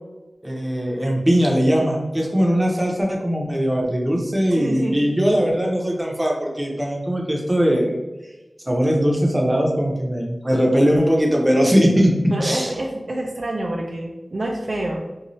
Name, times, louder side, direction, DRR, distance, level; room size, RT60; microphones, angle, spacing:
voice 1, 0.4-8.0 8.7-12.1 12.4-12.7, equal, 20° right, -1 dB, 0.7 m, -20 dB
voice 2, 4.5-5.0 12.3-15.0, right 1 dB, 60° right, 0 dB, 0.4 m, -27 dB
2.6 x 2.2 x 3.0 m, 1.1 s
wide cardioid pair, 60°, 0 cm